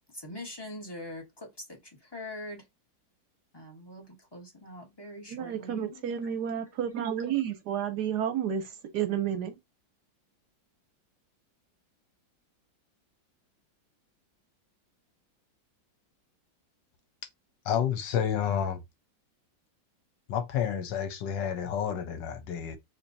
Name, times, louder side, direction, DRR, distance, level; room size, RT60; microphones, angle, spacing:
voice 1, 0.1-2.7 3.5-6.5, left 1 dB, 15° left, 1.0 m, -43 dB
voice 2, 5.3-9.6, right 9 dB, 70° right, 1.1 m, -31 dB
voice 3, 17.7-18.8 20.3-22.8, left 8 dB, 80° left, 1.4 m, -30 dB
4.4 x 2.9 x 2.7 m
omnidirectional pair, 2.0 m